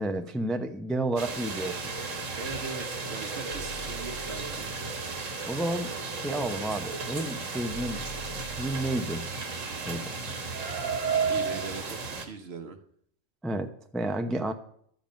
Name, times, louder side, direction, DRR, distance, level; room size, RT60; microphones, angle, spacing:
voice 1, 0.0-1.9 5.5-5.9 6.2-8.0 8.5-9.2 9.9-10.1 13.4-14.5, right 1 dB, ahead, 7 dB, 0.5 m, -31 dB
sound 1, 1.2-12.2, right 4 dB, 85° right, 1.8 m, -33 dB
voice 2, 2.2-4.7 11.3-12.8, right 4 dB, 60° right, 8 dB, 1.2 m, -40 dB
sound 2, 3.5-4.8 6.6-6.8 7.7-9.0 10.9-11.0 11.5-11.6, right 1 dB, 80° left, 1.9 m, -45 dB
12.5 x 7.3 x 5.2 m, 0.65 s
omnidirectional pair, 1.3 m